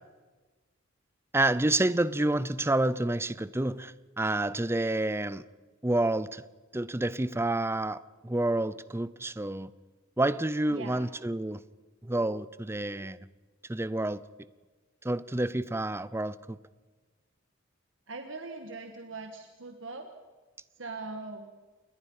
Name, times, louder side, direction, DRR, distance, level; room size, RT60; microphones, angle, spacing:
voice 1, 1.3-5.4 5.8-6.4 6.7-9.7 10.2-11.6 12.0-13.2 13.7-14.2 15.0-16.6, right 2 dB, 15° right, 0.6 m, -29 dB
voice 2, 10.7-11.0 18.1-20.1 20.8-21.5, right 3 dB, 70° right, 1.6 m, -41 dB
27.5 x 21.5 x 5.6 m
head